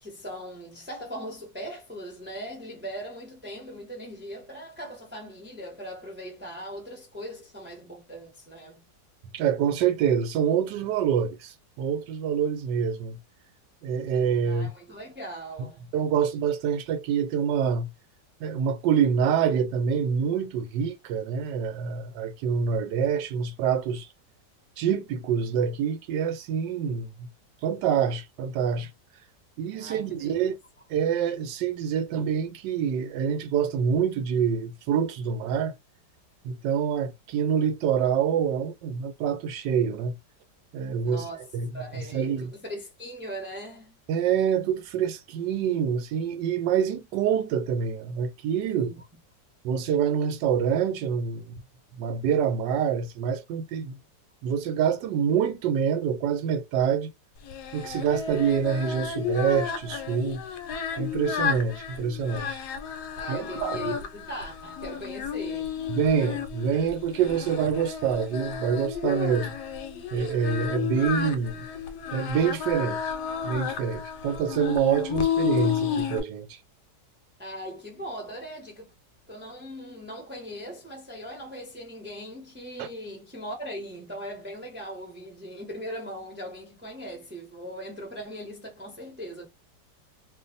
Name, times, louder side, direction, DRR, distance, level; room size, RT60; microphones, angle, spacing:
voice 1, 0.0-8.8 14.4-15.9 29.7-30.4 41.0-41.4 41.7-44.0 48.7-49.0 63.2-65.8 77.4-78.9 79.3-89.5, right 1 dB, 10° right, 0.8 m, -39 dB
voice 2, 9.3-13.2 13.8-14.7 15.9-17.9 18.4-24.1 24.8-27.3 27.6-28.9 29.6-30.5 30.9-35.7 36.4-40.2 40.7-41.2 41.5-41.7 42.1-42.5 44.1-48.9 49.6-51.6 52.0-53.9 54.4-57.1 57.7-60.4 61.0-62.6 63.3-63.8 65.9-69.6 70.1-71.7 72.1-73.0 73.4-76.6 82.8-82.9, right 7 dB, 80° right, 1.2 m, -26 dB
Singing, 57.5-76.2, left 8 dB, 75° left, 1.1 m, -32 dB
2.5 x 2.5 x 3.9 m
omnidirectional pair, 1.9 m